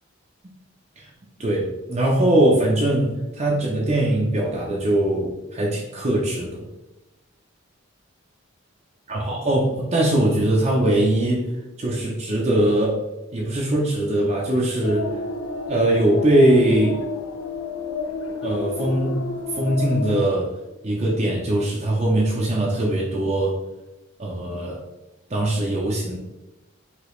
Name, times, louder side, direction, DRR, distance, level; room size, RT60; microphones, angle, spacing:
voice 1, 1.4-6.6 9.1-11.4 11.8-13.0 13.3-15.2 15.7-17.0 18.4-19.1 19.5-20.5 20.8-23.6 24.2-24.8 25.3-26.2, right 1 dB, 30° right, -3 dB, 0.5 m, -21 dB
sound 1, 14.8-20.2, left 4 dB, 85° left, 0.5 m, -30 dB
5.0 x 2.9 x 3.0 m, 1.0 s
head